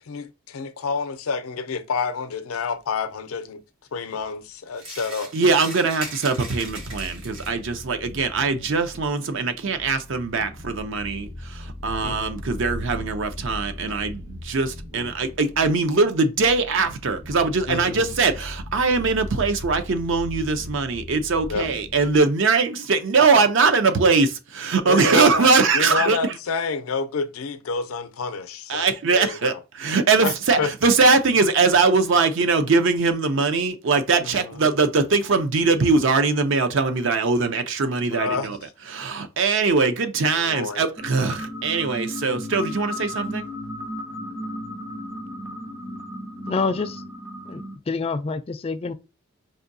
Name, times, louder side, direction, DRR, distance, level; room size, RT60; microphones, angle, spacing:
voice 1, 0.0-3.6 3.9-5.3 12.0-12.4 14.9-15.1 17.7-18.2 21.5-21.7 24.9-29.6 30.2-30.7 34.2-34.6 38.1-38.7 40.3-40.9, left 5 dB, 90° left, 0.5 m, -29 dB
sound 1, 4.8-7.7, right 2 dB, 80° right, 1.4 m, -38 dB
voice 2, 5.3-26.2 28.7-38.6 38.9-43.5, right 4 dB, 60° right, 0.5 m, -21 dB
sound 2, 6.5-22.2, left 1 dB, 40° right, 0.9 m, -38 dB
sound 3, 41.0-47.8, equal, 20° right, 0.6 m, -34 dB
voice 3, 46.5-47.0 47.5-48.9, left 4 dB, 30° left, 0.3 m, -27 dB
4.8 x 2.6 x 2.6 m
head